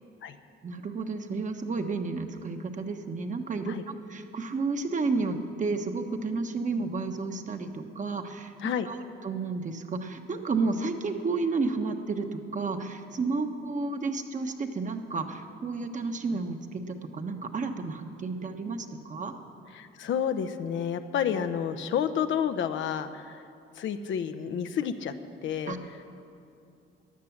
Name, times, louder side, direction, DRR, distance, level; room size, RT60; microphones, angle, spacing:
voice 1, 0.6-8.5 8.9-9.0 9.2-19.3 25.7-25.8, right 3 dB, 40° right, 6 dB, 1.2 m, -31 dB
voice 2, 19.7-23.4 23.8-25.1 25.4-25.8, left 8 dB, 75° left, 9 dB, 0.8 m, -30 dB
15.0 x 10.5 x 7.2 m, 2.5 s
cardioid pair, 90°, 20 cm